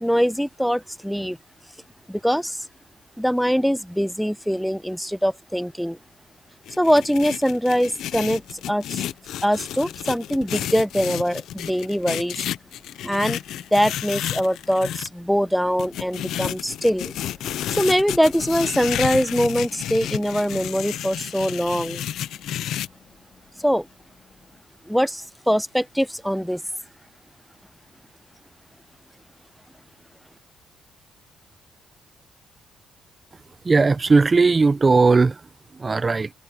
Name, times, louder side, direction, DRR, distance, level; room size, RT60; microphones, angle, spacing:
voice 1, 0.0-1.4 2.1-2.7 3.2-6.0 6.8-9.0 9.4-12.4 13.0-13.4 13.7-17.1 17.7-22.0 23.6-23.9 24.9-26.6, equal, ahead, 0.3 m, -23 dB
sound 1, 6.7-15.1 15.8-22.9, left 11 dB, 80° left, 0.9 m, -31 dB
sound 2, 8.0-24.6, left 5 dB, 45° left, 3.7 m, -56 dB
voice 2, 33.6-36.3, right 4 dB, 30° right, 0.8 m, -18 dB
cardioid pair, 90°, 0 cm